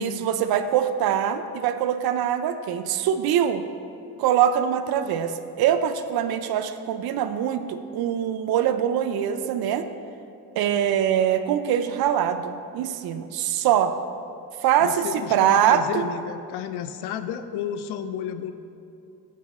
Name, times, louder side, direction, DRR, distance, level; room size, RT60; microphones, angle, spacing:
voice 1, 0.0-3.6 4.2-9.8 10.6-13.9 14.6-16.1, right 9 dB, 65° right, 9 dB, 0.5 m, -23 dB
voice 2, 14.8-18.5, left 8 dB, 80° left, 11 dB, 0.5 m, -32 dB
7.4 x 5.9 x 4.2 m, 2.6 s
cardioid pair, 135°, 39 cm